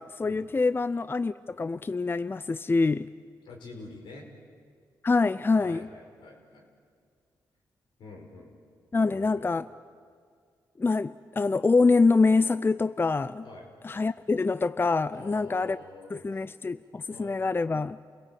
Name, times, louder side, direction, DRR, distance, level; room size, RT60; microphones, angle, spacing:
voice 1, 0.0-3.1 5.0-5.9 8.9-9.7 10.8-13.5 13.8-15.8 16.1-18.0, left 3 dB, 30° left, 15 dB, 0.5 m, -25 dB
voice 2, 3.4-4.3 5.6-6.7 8.0-8.5 9.1-9.5 13.4-13.7 15.1-16.5 17.1-17.4, left 3 dB, 80° left, 1 dB, 4.8 m, -47 dB
28.0 x 17.5 x 8.6 m, 2.1 s
supercardioid pair, 55°, 8 cm